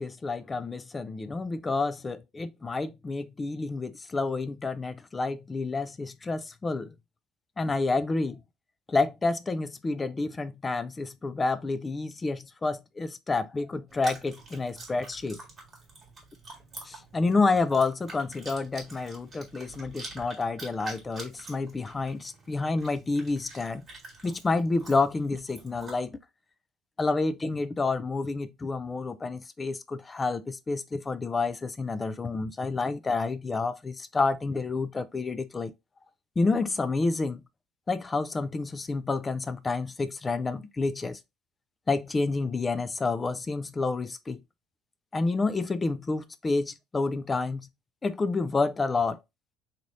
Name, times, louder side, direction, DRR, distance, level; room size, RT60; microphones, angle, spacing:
voice 1, 0.0-6.9 7.6-8.4 8.9-15.4 16.8-23.8 24.2-26.2 27.0-35.7 36.4-37.4 37.9-41.2 41.9-44.4 45.1-47.7 48.0-49.2, left 3 dB, 15° left, 0.3 m, -29 dB
Chewing mastication, 13.9-26.0, right 3 dB, 15° right, 1.6 m, -46 dB
4.1 x 3.1 x 2.5 m
cardioid pair, 175°, 0 cm